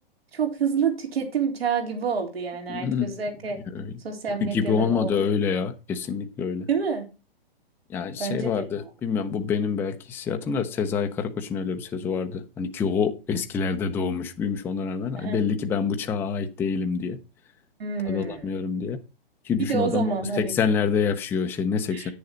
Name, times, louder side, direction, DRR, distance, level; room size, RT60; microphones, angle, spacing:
voice 1, 0.3-3.6 4.0-5.4 6.7-7.1 8.2-8.9 15.2-15.4 17.8-18.6 19.6-20.5 21.9-22.1, right 6 dB, 80° right, 3.5 m, -28 dB
voice 2, 2.7-3.1 3.7-3.9 4.4-6.7 7.9-17.2 18.1-19.0 19.4-22.1, left 6 dB, 5° left, 0.5 m, -26 dB
9.3 x 6.7 x 4.3 m
hypercardioid pair, 135°, 30 cm